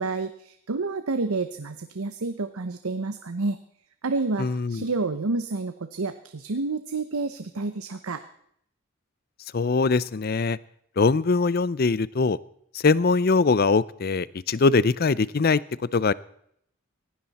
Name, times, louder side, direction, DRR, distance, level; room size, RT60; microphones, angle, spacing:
voice 1, 0.0-3.6 4.0-8.2, right 3 dB, 85° right, 10 dB, 0.8 m, -29 dB
voice 2, 4.4-4.8 9.5-10.6 11.0-12.4 12.7-15.6 15.9-16.1, left 4 dB, 45° left, 20 dB, 0.5 m, -22 dB
18.5 x 16.0 x 4.2 m, 0.70 s
head